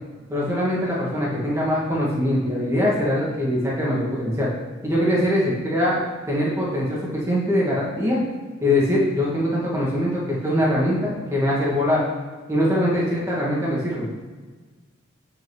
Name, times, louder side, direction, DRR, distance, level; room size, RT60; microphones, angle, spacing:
voice 1, 0.3-4.5 4.8-8.2 8.6-12.0 12.5-14.1, left 1 dB, 15° right, -6 dB, 1.7 m, -22 dB
8.4 x 6.1 x 3.1 m, 1.4 s
head